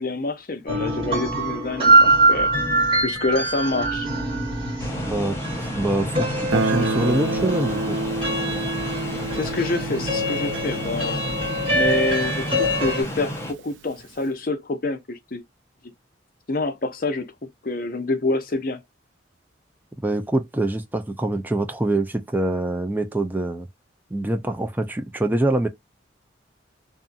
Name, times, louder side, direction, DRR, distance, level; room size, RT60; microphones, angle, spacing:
voice 1, 0.0-2.5 3.0-4.1 9.3-11.2 11.7-15.4 16.5-18.8, left 3 dB, 45° left, 0.6 m, -27 dB
sound 1, 0.7-13.0, right 2 dB, 30° right, 1.4 m, -23 dB
sound 2, 4.8-13.5, equal, 15° left, 0.8 m, -32 dB
voice 2, 5.0-8.0 20.0-23.7 24.1-25.7, right 1 dB, 10° right, 0.4 m, -25 dB
Guitar, 6.5-13.2, right 2 dB, 75° right, 0.4 m, -29 dB
2.6 x 2.5 x 2.3 m
head